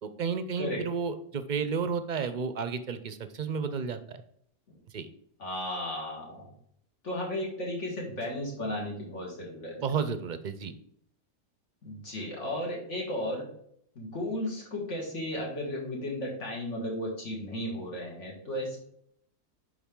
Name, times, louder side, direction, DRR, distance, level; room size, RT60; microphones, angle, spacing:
voice 1, 0.0-4.2 4.9-5.1 9.8-10.7, right 6 dB, 50° right, 10 dB, 0.6 m, -32 dB
voice 2, 5.4-6.5 7.0-9.8 11.8-13.5 14.0-18.8, left 1 dB, 70° left, -3 dB, 2.4 m, -34 dB
7.1 x 5.0 x 3.7 m, 0.68 s
omnidirectional pair, 1.3 m